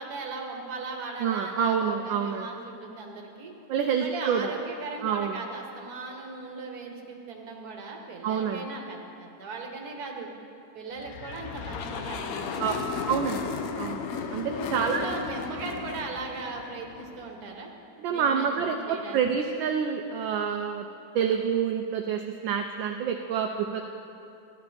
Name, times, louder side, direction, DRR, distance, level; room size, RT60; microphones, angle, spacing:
voice 1, 0.0-3.5 4.0-10.3 10.7-12.8 14.6-17.7 18.1-19.2, right 3 dB, 50° right, 1 dB, 1.6 m, -38 dB
voice 2, 1.2-2.5 3.7-4.5 5.0-5.4 8.2-8.6 12.6-12.7 13.1-13.5 13.8-14.0 14.3-15.0 18.0-20.8 21.1-23.8, right 7 dB, 70° right, 3 dB, 1.2 m, -27 dB
sound 1, 11.0-17.4, left 6 dB, 80° left, 0.8 m, -35 dB
14.5 x 10.5 x 4.3 m, 2.7 s
omnidirectional pair, 2.4 m